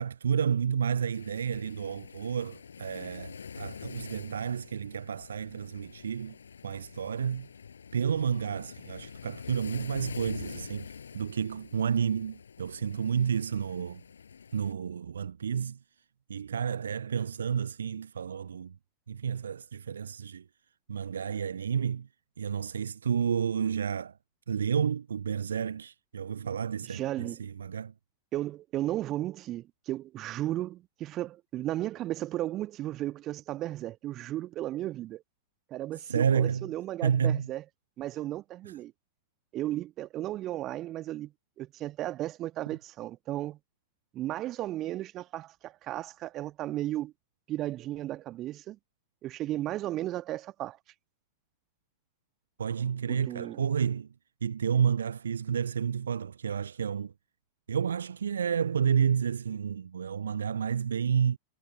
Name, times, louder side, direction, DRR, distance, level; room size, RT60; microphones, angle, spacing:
voice 1, 0.0-6.3 6.6-7.5 7.9-14.0 14.5-15.8 16.3-18.8 19.1-20.4 20.9-22.1 22.4-24.1 24.5-27.9 36.1-36.7 37.0-37.5 52.6-54.1 54.4-57.1 57.7-61.4, right 7 dB, 70° right, 0.5 m, -30 dB
Waves surf, 1.1-14.7, left 6 dB, 70° left, 6.2 m, -46 dB
voice 2, 26.8-27.4 28.3-35.2 35.7-37.6 38.0-38.9 39.5-43.6 44.1-47.1 47.5-48.8 49.2-50.8 53.1-53.6, right 14 dB, 35° right, 1.3 m, -35 dB
figure-of-eight pair, 90°, 0 cm